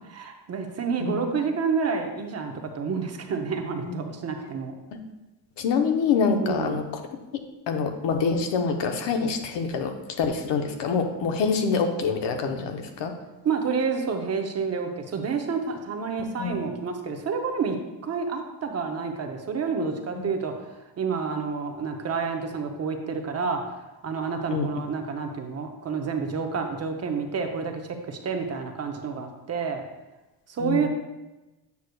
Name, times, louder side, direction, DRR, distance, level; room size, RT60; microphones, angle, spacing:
voice 1, 0.0-4.8 6.4-6.8 13.4-17.8 18.0-29.8 30.5-30.9, right 5 dB, 35° right, 4 dB, 0.7 m, -29 dB
voice 2, 5.6-7.0 7.7-9.9 10.2-13.1 16.4-16.6 20.1-20.2 24.5-24.7 30.6-30.9, left 5 dB, 70° left, 5 dB, 0.9 m, -25 dB
8.1 x 6.4 x 2.3 m, 1.1 s
cardioid pair, 135°, 44 cm